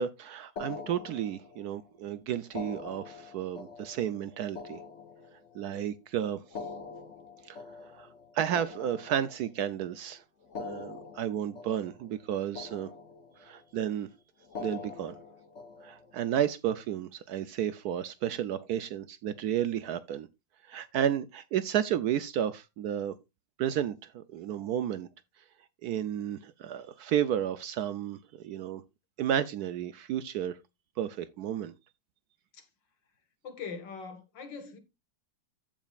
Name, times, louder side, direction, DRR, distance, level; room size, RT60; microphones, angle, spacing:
voice 1, 0.0-4.8 5.5-6.4 7.4-7.6 8.0-8.1 8.3-10.2 10.6-12.9 13.4-14.1 14.6-15.2 15.8-20.3 20.7-23.2 23.6-25.1 25.8-28.8 29.2-30.6 31.0-31.7, right 10 dB, 70° right, 1.0 m, -32 dB
sound 1, 0.6-1.8 2.4-5.7 6.4-9.7 10.4-12.3 12.5-13.6 14.4-16.2, left 4 dB, 40° left, 1.7 m, -44 dB
voice 2, 33.4-34.8, left 5 dB, 75° left, 2.3 m, -41 dB
14.5 x 5.1 x 2.4 m
omnidirectional pair, 2.0 m